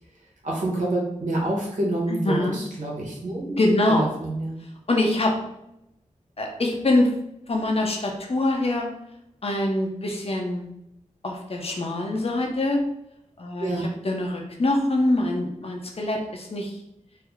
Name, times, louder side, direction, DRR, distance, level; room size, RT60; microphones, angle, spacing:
voice 1, 0.4-3.4 3.9-4.6 13.6-13.8, right 1 dB, 90° right, -3 dB, 1.1 m, -27 dB
voice 2, 2.1-2.6 3.6-4.1 4.9-5.3 6.4-7.1 7.5-8.9 9.4-10.7 11.2-12.8 13.4-16.7, left 1 dB, 50° left, 1 dB, 0.7 m, -24 dB
3.4 x 2.0 x 3.5 m, 0.81 s
wide cardioid pair, 85°, 13 cm